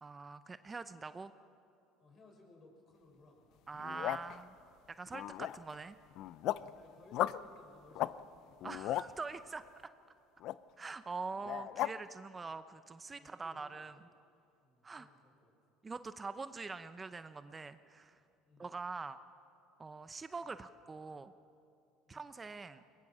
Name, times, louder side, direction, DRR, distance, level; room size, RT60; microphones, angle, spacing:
voice 1, 0.0-1.3 3.7-4.5 4.9-6.0 8.6-9.6 10.8-14.1 14.8-15.1 15.8-18.2 18.6-19.2 19.8-21.3 22.1-22.8, right 4 dB, 20° right, 12 dB, 0.7 m, -44 dB
voice 2, 2.0-3.6 4.0-4.7 6.5-8.5 11.2-11.4 12.4-12.5 13.1-13.9 14.6-15.5 18.4-18.7 22.1-22.3, left 2 dB, 45° left, 1 dB, 6.6 m, -62 dB
sound 1, 3.7-4.4 5.1-5.7 6.1-6.7 7.1-7.4 7.9-8.1 8.5-9.1 10.4-10.6 11.4-11.9, left 14 dB, 60° left, 0.5 m, -36 dB
22.0 x 21.0 x 7.4 m, 2.6 s
supercardioid pair, 100°, 0 cm